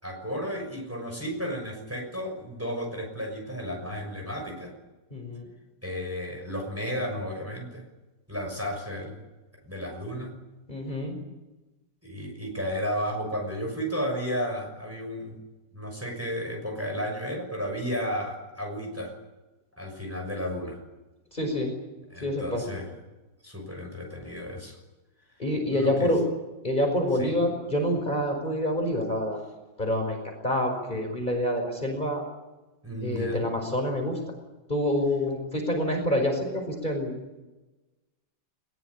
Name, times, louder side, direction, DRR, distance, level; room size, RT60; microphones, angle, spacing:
voice 1, 0.0-4.7 5.8-7.8 8.3-9.2 9.6-10.3 12.0-15.4 15.7-19.1 19.8-20.8 22.1-22.9 23.4-24.8 25.7-26.1 27.2-27.3 32.8-33.5, equal, 5° right, 1 dB, 6.2 m, -33 dB
voice 2, 5.1-5.5 10.7-11.1 21.3-21.7 22.2-22.6 25.4-26.2 26.6-29.4 29.8-32.2 33.0-34.2 34.7-37.2, left 1 dB, 25° left, 3 dB, 5.3 m, -27 dB
21.5 x 21.0 x 9.8 m, 1.1 s
omnidirectional pair, 2.0 m